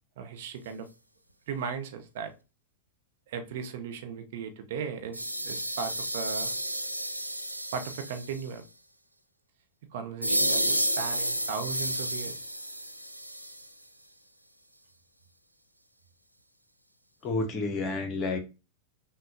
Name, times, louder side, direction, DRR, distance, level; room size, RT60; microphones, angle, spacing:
voice 1, 0.2-0.9 1.5-2.3 3.3-6.5 7.7-8.7 9.9-12.4, right 6 dB, 55° right, 0.8 m, -37 dB
sound 1, 5.1-8.5 10.2-13.7, equal, 90° left, 0.4 m, -31 dB
voice 2, 17.2-18.4, left 3 dB, 35° left, 0.9 m, -30 dB
6.0 x 2.3 x 2.5 m
figure-of-eight pair, 90°, 0 cm